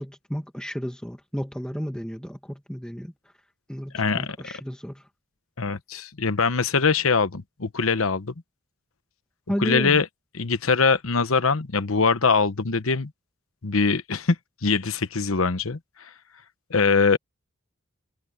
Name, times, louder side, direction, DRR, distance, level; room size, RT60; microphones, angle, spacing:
voice 1, 0.0-3.1 3.7-5.0 9.5-10.0, equal, 5° left, 1.9 m, -32 dB
voice 2, 3.9-4.4 5.6-8.3 9.6-10.1 10.3-13.1 13.6-14.4 14.6-15.8 16.7-17.2, left 4 dB, 75° left, 1.1 m, -22 dB
head